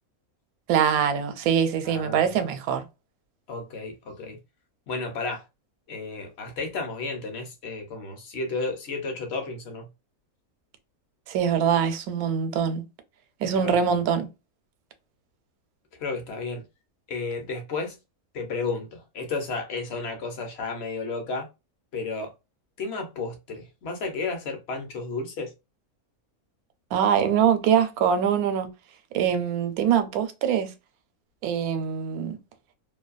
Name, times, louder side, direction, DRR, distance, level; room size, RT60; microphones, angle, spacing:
voice 1, 0.7-2.9 11.3-12.9 13.4-14.3 26.9-28.7 29.1-30.7 31.4-32.4, right 8 dB, 85° right, 1.0 m, -23 dB
voice 2, 1.8-2.3 3.5-4.4 4.9-5.4 5.9-9.9 13.5-14.0 16.0-16.6 17.1-18.0 18.3-21.5 21.9-22.3 22.8-25.5, left 3 dB, 55° left, 0.8 m, -32 dB
2.6 x 2.2 x 2.3 m
omnidirectional pair, 1.5 m